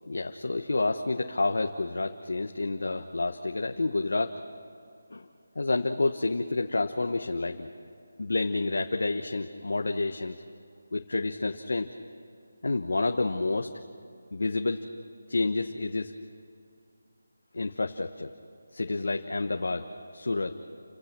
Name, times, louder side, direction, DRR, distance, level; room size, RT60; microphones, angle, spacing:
voice 1, 0.1-4.4 5.1-5.3 5.5-7.7 8.2-10.4 10.9-11.9 12.6-13.7 14.3-14.8 15.3-16.1 17.5-18.3 18.7-20.6, left 3 dB, 70° left, 5 dB, 1.1 m, -29 dB
29.5 x 16.5 x 6.1 m, 2.4 s
figure-of-eight pair, 175°, 0 cm